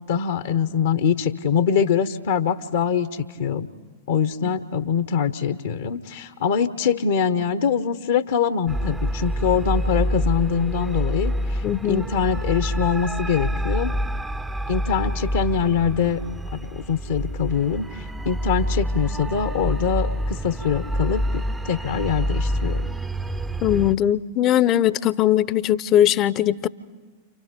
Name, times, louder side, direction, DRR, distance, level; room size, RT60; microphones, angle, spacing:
voice 1, 0.1-3.7 4.1-13.9 14.7-16.2 16.5-22.8, left 7 dB, 60° left, 10 dB, 1.0 m, -23 dB
sound 1, 8.7-23.9, equal, 10° right, 0.7 m, -27 dB
voice 2, 11.6-12.0 23.6-26.7, left 11 dB, 35° left, 17 dB, 0.7 m, -20 dB
30.0 x 28.0 x 5.2 m, 1.4 s
figure-of-eight pair, 90°, 0 cm